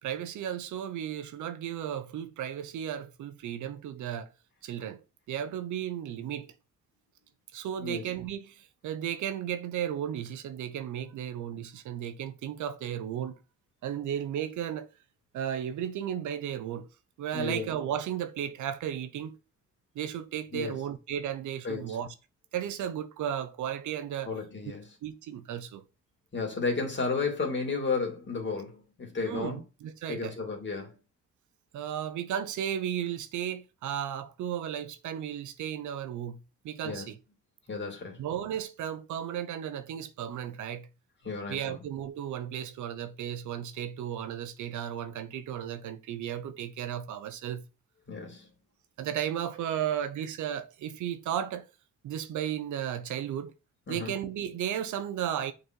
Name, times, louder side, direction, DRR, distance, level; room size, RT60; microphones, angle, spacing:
voice 1, 0.0-4.3 4.6-5.0 5.3-6.5 7.5-13.4 13.8-14.9 15.3-16.9 17.2-19.4 20.0-22.1 22.5-24.3 25.0-25.8 29.2-30.4 31.7-36.4 36.6-37.2 38.2-40.9 41.5-47.6 49.0-51.6 52.0-53.5 53.9-55.5, right 10 dB, 75° right, 0.8 m, -34 dB
voice 2, 17.3-17.7 20.5-20.8 21.6-22.0 24.3-24.9 26.3-29.6 30.1-30.9 36.8-37.1 37.7-38.2 41.2-41.8 48.1-48.5 53.9-54.1, left 4 dB, 40° left, 2.6 m, -33 dB
6.6 x 4.2 x 4.5 m
cardioid pair, 90°, 30 cm